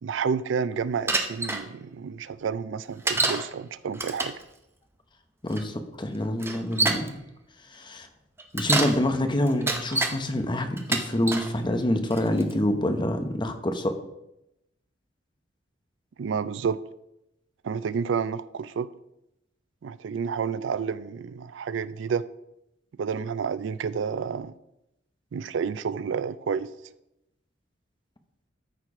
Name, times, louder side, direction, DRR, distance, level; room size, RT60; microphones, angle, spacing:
voice 1, 0.0-4.3 16.2-16.8 17.6-18.9 19.8-22.3 23.0-24.5 25.3-26.7, right 6 dB, 75° right, 0.4 m, -30 dB
Bicycle, 1.1-1.6 3.1-3.5 3.9-4.4 5.5-5.6 6.4-7.1 8.4-9.0 9.5-10.1 10.8-11.5 12.1-12.5, right 3 dB, 15° right, 0.7 m, -26 dB
voice 2, 5.4-7.2 7.7-8.1 8.5-13.9, left 1 dB, 25° left, 0.9 m, -26 dB
13.0 x 4.5 x 4.8 m
head